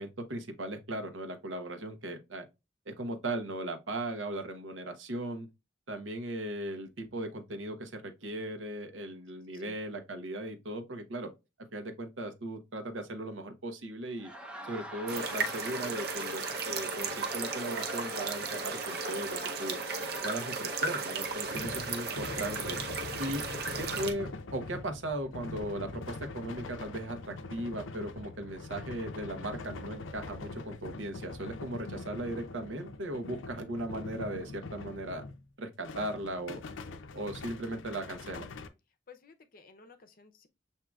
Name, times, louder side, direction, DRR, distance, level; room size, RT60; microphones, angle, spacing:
voice 1, 0.0-2.5 2.9-5.5 5.9-11.3 11.7-14.3 14.7-19.8 20.2-22.8 23.2-23.4 23.8-35.2 35.6-36.6 37.1-38.5, right 1 dB, 85° right, 0.9 m, -37 dB
Laughter, 14.1-20.9, right 1 dB, 5° right, 0.6 m, -46 dB
sound 1, 15.1-24.1, right 4 dB, 55° right, 0.8 m, -35 dB
sound 2, 21.2-35.5 35.8-38.7, left 3 dB, 90° left, 0.5 m, -43 dB
voice 2, 39.1-40.5, left 4 dB, 50° left, 0.6 m, -54 dB
7.3 x 2.8 x 2.3 m
head